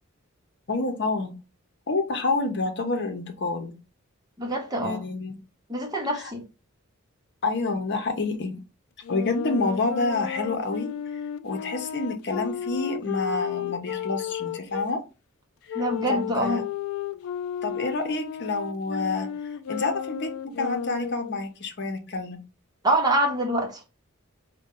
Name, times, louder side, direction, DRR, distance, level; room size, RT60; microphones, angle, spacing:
voice 1, 0.7-1.3 1.9-3.7 4.8-5.4 6.1-6.3 7.4-8.6 9.1-15.0 15.7-16.6 17.6-22.4, left 3 dB, 55° left, 0.8 m, -28 dB
voice 2, 4.4-5.0 5.7-6.4 15.7-16.6 22.8-23.8, right 1 dB, 20° right, 0.9 m, -25 dB
Wind instrument woodwind instrument, 9.0-14.9 15.7-21.4, left 9 dB, 80° left, 0.3 m, -33 dB
5.3 x 2.2 x 3.7 m
head